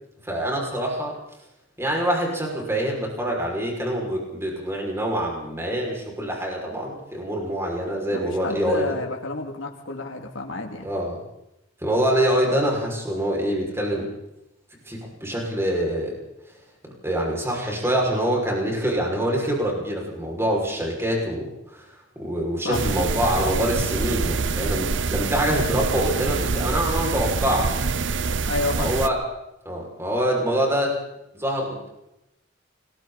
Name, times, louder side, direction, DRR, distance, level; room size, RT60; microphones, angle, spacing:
voice 1, 0.3-1.1 1.8-8.9 10.8-11.2 11.8-14.1 14.9-16.2 17.0-21.5 22.2-27.8 28.8-29.2 29.6-31.0 31.3-31.9, equal, 15° right, -2 dB, 6.1 m, -25 dB
voice 2, 8.1-10.9 22.6-22.9 28.5-28.9, left 3 dB, 80° left, 1 dB, 2.7 m, -30 dB
sound 1, 22.7-29.1, right 4 dB, 65° right, 0.8 m, -25 dB
29.5 x 21.5 x 4.2 m, 0.86 s
head